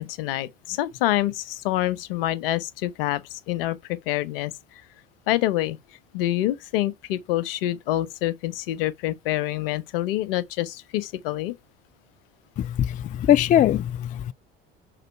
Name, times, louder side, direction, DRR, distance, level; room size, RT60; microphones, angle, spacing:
voice 1, 0.0-4.5 5.3-5.8 6.1-11.5, left 14 dB, 65° left, 0.8 m, -26 dB
voice 2, 12.6-14.3, left 11 dB, 30° left, 0.4 m, -21 dB
5.8 x 3.9 x 4.4 m
figure-of-eight pair, 60°, 30 cm